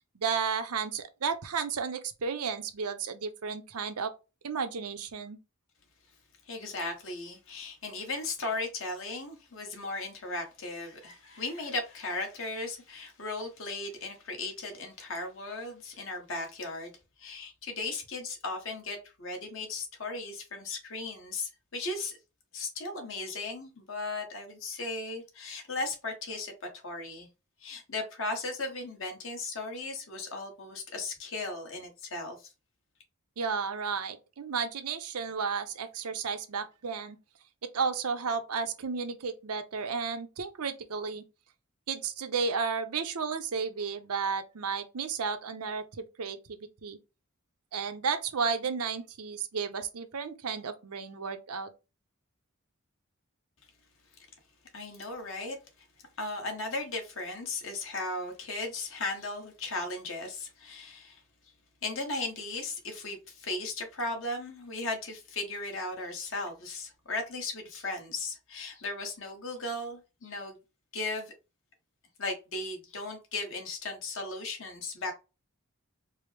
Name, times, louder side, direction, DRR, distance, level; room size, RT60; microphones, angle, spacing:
voice 1, 0.1-4.1 4.4-5.4 33.4-37.2 37.7-41.2 41.9-47.0 47.7-51.7, right 5 dB, 85° right, 0.6 m, -33 dB
voice 2, 6.5-16.9 17.2-22.1 22.5-27.3 27.6-32.5 54.7-55.6 56.2-61.2 61.8-70.6 70.9-71.3 72.2-75.1, left 2 dB, 60° left, 1.2 m, -36 dB
4.6 x 2.0 x 3.3 m
head